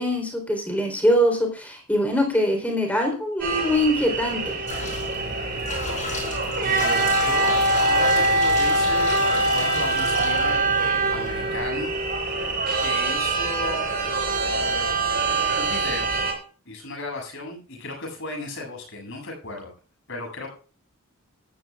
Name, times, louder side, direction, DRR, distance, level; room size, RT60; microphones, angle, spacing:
voice 1, 0.0-4.6, equal, 5° left, 3 dB, 3.7 m, -23 dB
sound 1, 3.4-16.3, right 2 dB, 45° right, 6.5 m, -24 dB
sound 2, 4.7-11.6, left 2 dB, 35° left, 5.1 m, -33 dB
voice 2, 6.6-11.9 12.8-13.8 14.4-15.0 15.6-16.1 16.7-19.7 20.1-20.5, left 2 dB, 60° left, 1 dB, 7.8 m, -35 dB
18.0 x 14.0 x 2.4 m, 0.39 s
head